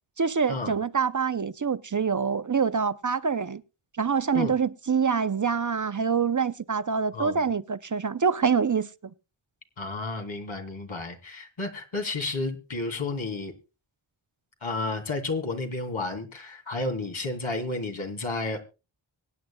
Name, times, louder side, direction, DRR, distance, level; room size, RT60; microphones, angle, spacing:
voice 1, 0.2-3.6 4.0-8.9, right 6 dB, 40° right, 0.6 m, -25 dB
voice 2, 7.1-7.4 9.8-13.5 14.6-18.6, left 3 dB, 80° left, 2.7 m, -31 dB
24.0 x 9.3 x 2.3 m
wide cardioid pair, 70°, 47 cm